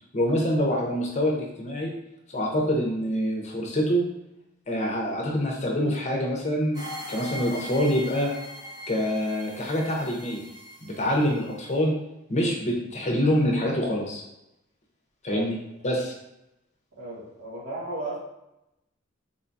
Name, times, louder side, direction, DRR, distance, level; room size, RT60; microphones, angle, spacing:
voice 1, 0.1-1.9 2.3-4.0 4.7-6.8 7.1-8.3 8.9-10.4 10.8-11.9 12.3-14.2 15.2-15.6 15.8-16.1, equal, 35° left, -1 dB, 0.6 m, -25 dB
sound 1, 6.7-11.8, equal, 20° right, 1.0 m, -41 dB
voice 2, 17.0-18.2, right 2 dB, 85° right, -6 dB, 1.2 m, -34 dB
3.6 x 2.3 x 2.6 m, 0.90 s
head